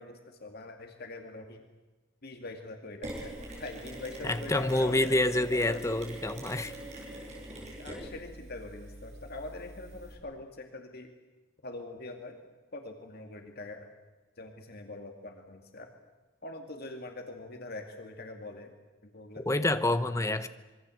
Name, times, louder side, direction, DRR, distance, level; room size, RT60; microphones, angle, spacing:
voice 1, 0.0-1.6 2.2-5.2 5.5-5.9 7.8-11.1 11.6-12.4 12.7-13.9 14.4-15.9 16.4-18.7 19.0-19.7 20.1-20.5, left 2 dB, 50° left, 4 dB, 2.4 m, -43 dB
Mechanisms, 3.0-10.1, right 1 dB, 35° right, 7.7 m, -43 dB
voice 2, 4.2-6.7 19.4-20.5, left 1 dB, 15° left, 10 dB, 1.1 m, -27 dB
26.0 x 23.5 x 7.8 m, 1.2 s
head